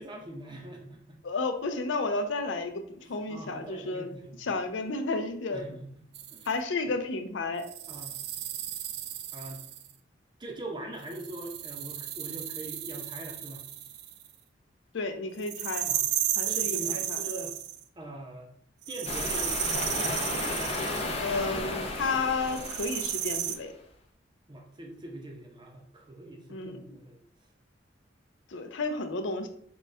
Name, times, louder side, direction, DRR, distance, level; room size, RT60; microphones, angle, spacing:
voice 1, 0.0-1.2 3.0-4.5 5.5-6.5 7.9-8.2 9.3-9.6 10.4-13.6 15.8-16.0 16.4-17.5 18.0-18.5 18.9-19.7 24.5-27.2, right 1 dB, 25° right, 1 dB, 0.7 m, -42 dB
voice 2, 1.2-4.1 4.4-5.7 6.5-7.7 14.9-15.9 16.4-16.8 17.1-17.2 21.2-23.7 26.5-26.8 28.5-29.5, left 3 dB, 80° left, 6 dB, 0.5 m, -32 dB
sound 1, 6.1-6.5 7.6-9.9 11.1-14.3 15.4-17.8 18.8-21.2 22.5-23.6, right 11 dB, 60° right, 0.3 m, -34 dB
sound 2, 19.0-23.5, left 2 dB, 35° left, 0.6 m, -33 dB
3.9 x 2.3 x 3.2 m, 0.63 s
head